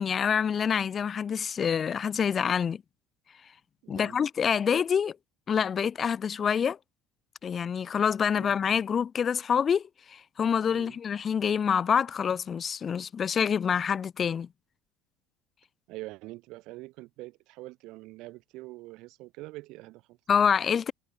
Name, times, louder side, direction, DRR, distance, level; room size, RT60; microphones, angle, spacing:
voice 1, 0.0-2.8 3.9-5.2 5.5-6.8 7.4-14.5 20.3-20.9, left 7 dB, 40° left, 0.7 m, -26 dB
voice 2, 3.8-4.2 8.3-8.6 10.7-11.0 15.9-20.2, right 20 dB, 65° right, 2.7 m, -44 dB
hypercardioid pair, 65°, 0 cm